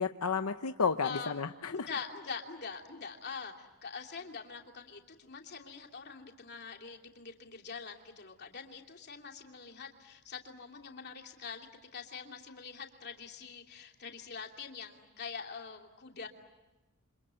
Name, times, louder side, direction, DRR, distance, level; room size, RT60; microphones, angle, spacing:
voice 1, 0.0-1.9, left 5 dB, 85° left, 7 dB, 0.9 m, -32 dB
voice 2, 1.0-1.4 1.7-11.7 11.9-16.3, left 5 dB, 50° left, 2 dB, 2.9 m, -44 dB
28.0 x 26.5 x 7.7 m, 1.1 s
head